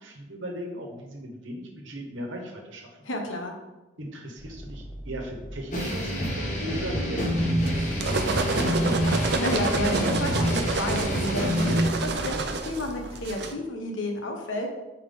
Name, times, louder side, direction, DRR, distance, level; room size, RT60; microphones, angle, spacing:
voice 1, 0.0-3.0 4.0-8.8, equal, 80° right, 1 dB, 1.2 m, -38 dB
voice 2, 3.0-3.6 9.1-14.7, left 1 dB, 85° left, 2 dB, 1.1 m, -31 dB
sound 1, 4.4-13.3, equal, 5° right, 0.6 m, -40 dB
sound 2, 5.7-11.8, equal, 40° left, 1.3 m, -27 dB
sound 3, 7.7-13.5, right 3 dB, 60° right, 0.6 m, -29 dB
5.7 x 4.5 x 3.7 m, 1.1 s
head